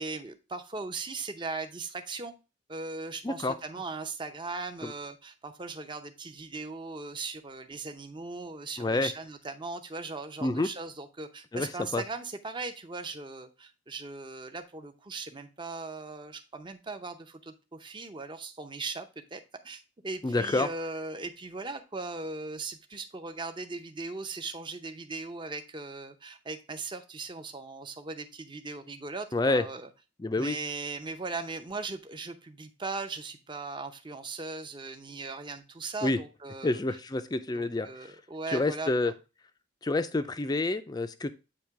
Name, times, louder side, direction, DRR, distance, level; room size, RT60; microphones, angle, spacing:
voice 1, 0.0-2.3 2.7-29.9 30.4-36.8 37.5-38.9, right 3 dB, 25° right, 7 dB, 0.7 m, -38 dB
voice 2, 3.2-3.5 4.8-4.9 8.8-9.1 10.4-10.7 11.5-11.7 11.9-12.0 20.2-20.7 29.3-29.6 30.2-30.6 36.0-36.2 36.6-38.1 38.5-39.1 39.8-41.3, left 2 dB, 20° left, 10 dB, 0.4 m, -28 dB
8.7 x 2.9 x 4.6 m, 0.30 s
head